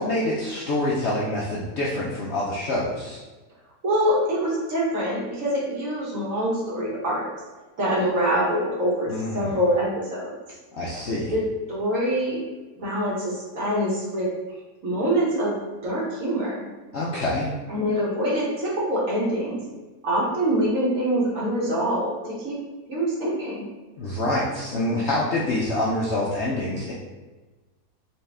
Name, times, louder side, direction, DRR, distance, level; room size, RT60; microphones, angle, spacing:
voice 1, 0.0-3.2 9.1-9.6 10.7-11.3 16.9-17.5 24.0-26.9, left 1 dB, 60° left, -6 dB, 0.7 m, -26 dB
voice 2, 3.8-7.3 7.8-10.2 11.3-11.4 11.7-12.4 12.8-14.3 14.8-16.6 17.7-19.6 20.0-22.6 22.9-23.6, equal, 55° right, -5 dB, 1.4 m, -25 dB
4.2 x 2.8 x 3.4 m, 1.2 s
omnidirectional pair, 1.7 m